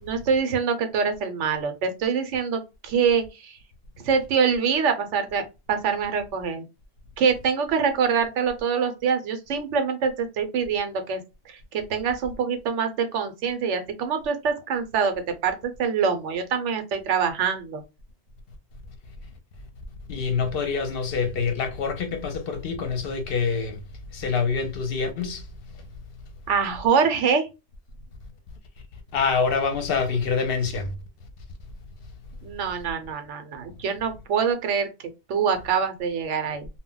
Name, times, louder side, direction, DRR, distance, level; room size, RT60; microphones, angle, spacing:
voice 1, 0.0-3.6 4.0-6.6 7.2-11.2 11.5-15.1 15.4-17.8 26.5-27.5 32.4-34.9 35.3-36.7, right 6 dB, 85° right, 1.0 m, -25 dB
voice 2, 20.1-23.8 24.1-25.5 29.1-30.9, left 5 dB, 65° left, 0.7 m, -26 dB
2.2 x 2.1 x 3.7 m
omnidirectional pair, 1.2 m